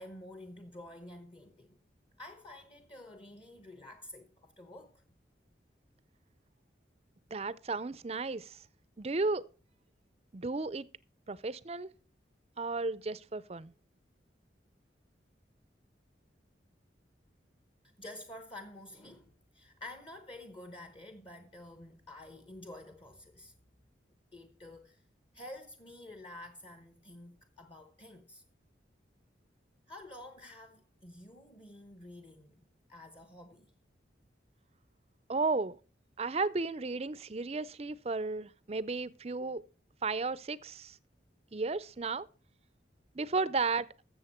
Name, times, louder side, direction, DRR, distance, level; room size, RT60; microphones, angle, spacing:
voice 1, 0.0-1.8 2.2-5.0 17.8-23.5 24.3-25.0 25.3-28.4 29.9-32.6 32.9-33.7, left 1 dB, 30° left, 1.0 m, -49 dB
voice 2, 7.3-8.6 9.0-9.4 10.3-10.9 11.3-11.9 12.6-13.7 35.3-35.8 36.2-39.6 40.0-40.9 41.5-42.3 43.2-43.9, right 3 dB, 35° right, 0.5 m, -34 dB
13.5 x 7.4 x 4.3 m
head